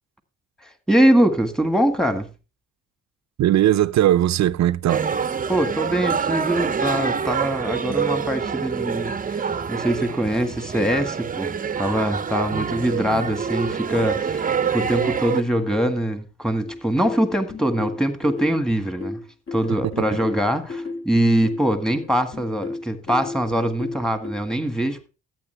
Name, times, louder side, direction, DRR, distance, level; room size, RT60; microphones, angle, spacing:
voice 1, 0.9-2.3 5.5-19.2 19.5-25.1, right 1 dB, ahead, 1.8 m, -23 dB
voice 2, 3.4-5.1 12.5-12.8 13.1-13.3, right 12 dB, 65° right, 0.6 m, -19 dB
sound 1, 4.9-15.4, right 6 dB, 30° right, 0.7 m, -26 dB
sound 2, 16.6-24.3, left 3 dB, 45° left, 3.4 m, -33 dB
13.5 x 8.6 x 3.4 m
cardioid pair, 90°, 30 cm